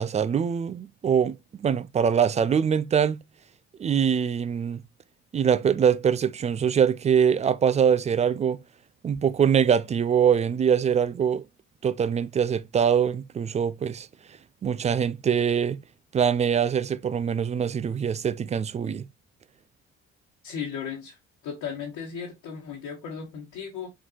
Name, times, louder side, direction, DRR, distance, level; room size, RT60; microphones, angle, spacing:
voice 1, 0.0-3.2 3.8-4.8 5.3-8.6 9.0-11.4 11.8-14.1 14.6-15.8 16.1-19.1, right 7 dB, 20° right, 0.3 m, -23 dB
voice 2, 20.4-21.2 21.4-23.9, left 7 dB, 60° left, 1.4 m, -35 dB
4.4 x 3.9 x 3.0 m
figure-of-eight pair, 45°, 38 cm